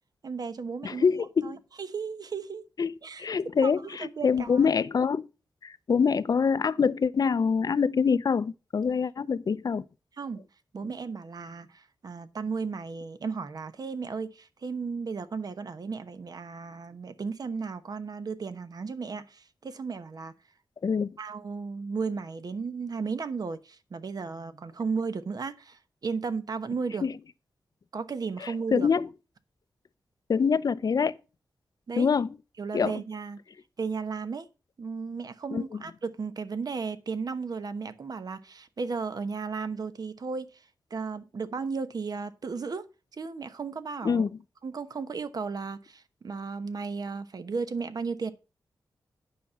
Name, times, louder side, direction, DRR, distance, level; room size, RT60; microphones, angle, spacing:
voice 1, 0.2-2.6 3.0-3.3 3.6-4.6 10.2-10.4 10.7-20.3 21.2-27.0 27.9-28.9 31.9-32.1 32.6-33.4 33.8-34.5 34.8-40.6 40.9-42.9 43.2-44.2 44.6-48.3, right 5 dB, 55° right, 1.0 m, -35 dB
voice 2, 0.8-1.6 2.8-5.3 5.6-9.8 20.8-21.2 27.0-27.1 28.4-29.1 30.3-31.2 32.0-32.3 32.7-32.9 35.5-35.8 44.0-44.4, left 6 dB, 55° left, 0.6 m, -25 dB
9.3 x 5.9 x 5.6 m
wide cardioid pair, 80°, 8 cm